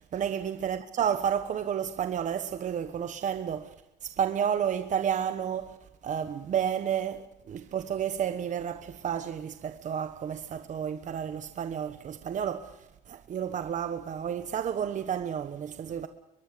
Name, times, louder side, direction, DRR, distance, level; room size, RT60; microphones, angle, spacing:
voice 1, 0.0-3.7 4.0-5.8 6.0-16.1, right 8 dB, 45° right, 1.2 m, -31 dB
24.0 x 21.5 x 6.9 m
cardioid pair, 110°, 17 cm